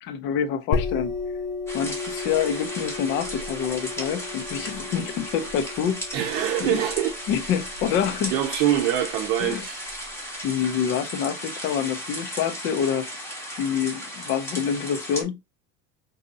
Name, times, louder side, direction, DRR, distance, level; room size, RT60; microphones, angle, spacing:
voice 1, 0.0-1.1 1.7-6.0 6.6-6.8 7.3-8.4 9.4-9.7 10.4-13.1 13.6-15.4, left 8 dB, 35° left, 0.4 m, -27 dB
sound 1, 0.7-10.1, left 3 dB, 90° left, 1.0 m, -34 dB
sound 2, 1.7-15.2, equal, 5° left, 0.8 m, -36 dB
voice 2, 6.1-7.1 8.3-9.8, right 11 dB, 75° right, 0.8 m, -24 dB
4.0 x 2.7 x 2.6 m
cardioid pair, 155°, 36 cm